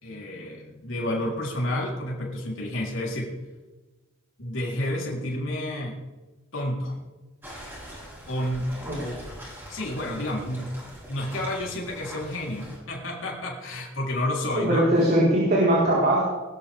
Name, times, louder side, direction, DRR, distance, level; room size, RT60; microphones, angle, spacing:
voice 1, 0.0-3.3 4.4-6.0 6.5-7.0 8.3-8.7 9.0-9.2 9.7-10.7 11.1-14.9, left 1 dB, 75° left, -3 dB, 3.9 m, -30 dB
sound 1, 7.4-12.8, equal, 10° right, 6.1 m, -42 dB
voice 2, 14.5-16.3, right 1 dB, 50° right, -6 dB, 4.7 m, -21 dB
20.5 x 13.0 x 3.6 m, 1.2 s
head